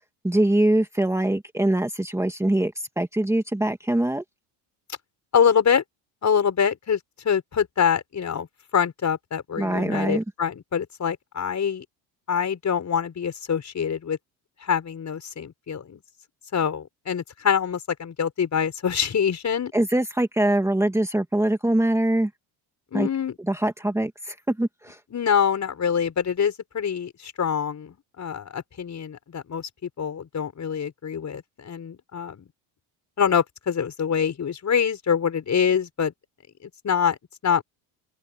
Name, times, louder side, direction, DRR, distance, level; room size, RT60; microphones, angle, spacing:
voice 1, 0.2-4.2 9.6-10.2 19.7-22.3 22.9-23.1 23.5-25.0, right 1 dB, 5° right, 2.4 m, -23 dB
voice 2, 5.3-5.8 6.2-7.0 7.2-8.5 8.7-11.8 12.3-14.2 14.6-16.0 16.5-19.7 22.9-23.4 25.1-29.7 30.0-32.4 33.2-36.1 36.6-37.2 37.4-37.6, left 7 dB, 35° left, 5.7 m, -25 dB
open air
supercardioid pair, 95°, 46 cm